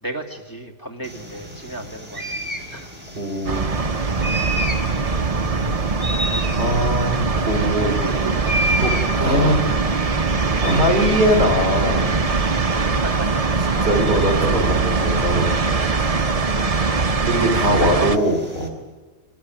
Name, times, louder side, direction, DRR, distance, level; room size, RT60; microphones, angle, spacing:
voice 1, 0.0-2.4 2.7-3.0 7.8-8.6 9.2-9.6 12.8-13.5 16.5-18.2, right 1 dB, 15° left, 1 dB, 2.5 m, -33 dB
sound 1, 1.0-18.7, equal, 10° right, 4.2 m, -33 dB
voice 2, 3.2-3.6 6.6-7.9 8.8-9.6 10.6-12.2 13.8-15.5 17.2-18.7, equal, 55° right, 4 dB, 4.0 m, -21 dB
sound 2, 3.5-18.2, right 4 dB, 30° right, 0.9 m, -21 dB
25.5 x 16.0 x 9.3 m, 1.3 s
omnidirectional pair, 1.4 m